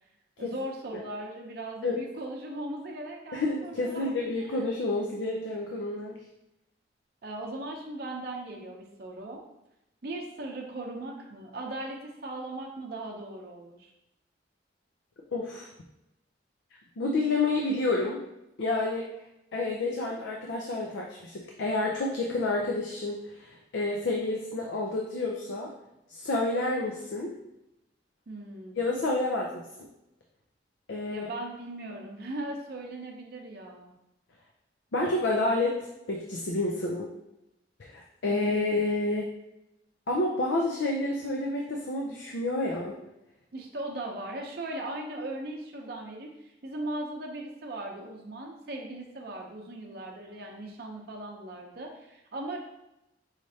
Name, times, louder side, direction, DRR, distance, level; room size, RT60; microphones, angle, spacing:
voice 1, 0.4-4.6 7.2-9.4 10.0-13.9 28.3-28.8 31.1-33.9 38.2-38.6 43.5-52.6, right 1 dB, 55° right, 0 dB, 0.6 m, -38 dB
voice 2, 3.3-6.2 15.3-15.7 17.0-18.2 18.6-19.0 19.5-25.7 26.1-27.3 28.8-29.9 30.9-31.3 34.9-35.8 36.1-37.1 37.8-39.3 40.1-43.0, left 2 dB, 75° left, -1 dB, 0.5 m, -29 dB
4.9 x 3.2 x 2.7 m, 0.90 s
head